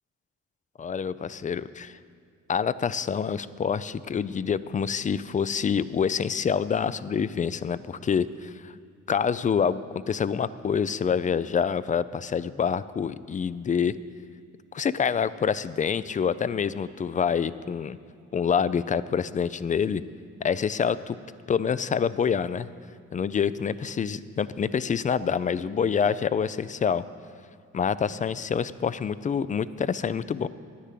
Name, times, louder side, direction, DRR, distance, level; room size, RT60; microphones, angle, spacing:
voice 1, 0.8-1.9 2.5-8.7 9.1-13.9 14.7-18.0 18.3-20.0 20.4-21.2 21.5-22.7 23.1-27.0 27.7-30.5, left 7 dB, 25° left, 16 dB, 0.4 m, -26 dB
10.5 x 10.0 x 7.5 m, 2.1 s
cardioid pair, 90°, 30 cm